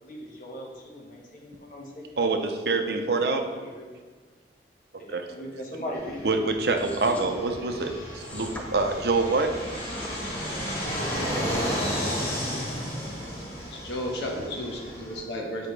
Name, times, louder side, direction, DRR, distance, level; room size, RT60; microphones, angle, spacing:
voice 1, 0.0-2.2 3.5-3.9 5.0-6.4 10.2-10.6 10.9-11.8 14.3-14.5, equal, 45° left, -2 dB, 1.2 m, -40 dB
voice 2, 2.2-3.5 5.1-5.3 6.2-9.5, right 3 dB, 60° right, 5 dB, 0.6 m, -26 dB
Fixed-wing aircraft airplane, 5.9-15.2, equal, 30° left, 2.1 m, -33 dB
sound 1, 6.7-7.3 8.2-8.7 9.5-10.1, left 1 dB, 10° left, 0.6 m, -41 dB
voice 3, 13.7-15.7, equal, 70° left, 0 dB, 1.2 m, -33 dB
8.6 x 5.0 x 3.2 m, 1.5 s
head